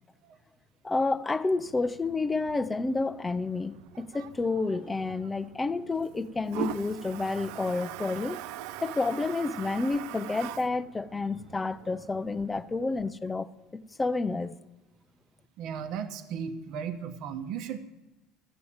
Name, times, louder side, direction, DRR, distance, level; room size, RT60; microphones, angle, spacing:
voice 1, 0.8-8.4 8.8-14.5, left 3 dB, 10° left, 0.4 m, -30 dB
Toilet flush, 1.6-13.1, right 11 dB, 75° right, 0.5 m, -43 dB
voice 2, 15.6-17.9, right 7 dB, 55° right, 1.0 m, -36 dB
12.5 x 7.9 x 8.6 m
cardioid pair, 160°, 0 cm